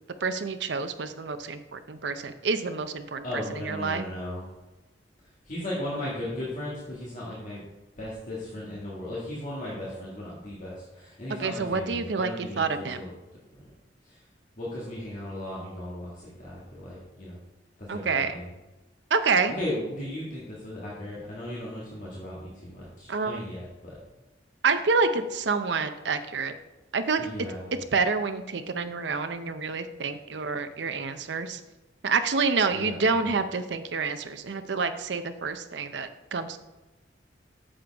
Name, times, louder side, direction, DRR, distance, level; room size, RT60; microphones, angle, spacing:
voice 1, 0.2-4.0 11.4-13.0 17.9-18.3 19.1-19.6 23.1-23.4 24.6-26.5 26.9-27.2 27.9-31.6 32.0-36.6, right 4 dB, 70° right, 9 dB, 0.6 m, -28 dB
voice 2, 3.2-4.4 5.4-7.6 8.0-13.1 13.5-13.7 14.0-14.2 14.6-17.4 17.8-18.5 19.5-24.0 27.2-27.7 32.7-33.2, left 1 dB, 45° left, -7 dB, 1.8 m, -36 dB
8.9 x 6.9 x 3.5 m, 1.1 s
head